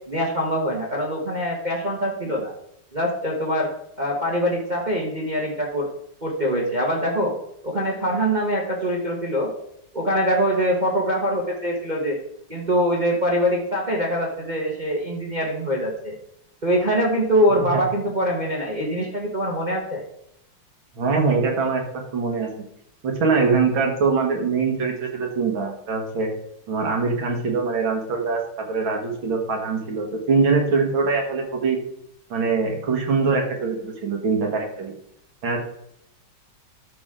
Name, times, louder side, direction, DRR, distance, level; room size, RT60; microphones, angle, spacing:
voice 1, 0.1-2.5 2.9-3.7 4.0-5.9 6.2-7.3 7.6-9.5 9.9-12.2 12.5-16.1 16.6-20.0, equal, 25° right, -2 dB, 1.2 m, -23 dB
voice 2, 17.5-17.8 20.9-21.8 22.1-22.5 23.0-26.3 26.7-28.4 28.7-31.8 32.3-34.9 35.4-35.6, right 4 dB, 70° right, 1 dB, 2.5 m, -23 dB
12.0 x 6.2 x 3.8 m, 0.76 s
omnidirectional pair, 2.3 m